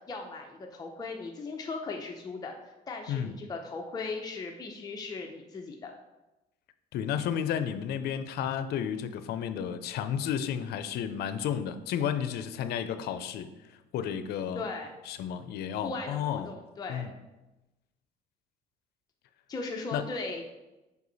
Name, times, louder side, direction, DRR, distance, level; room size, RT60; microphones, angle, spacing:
voice 1, 0.1-5.9 14.5-14.9 15.8-17.1 19.5-20.4, left 3 dB, 25° left, 1 dB, 0.7 m, -38 dB
voice 2, 6.9-13.5 13.9-14.6 15.1-16.5 16.9-17.1 19.9-20.0, left 9 dB, 70° left, 11 dB, 0.5 m, -32 dB
5.3 x 4.7 x 4.1 m, 1.0 s
cardioid pair, 110°, 17 cm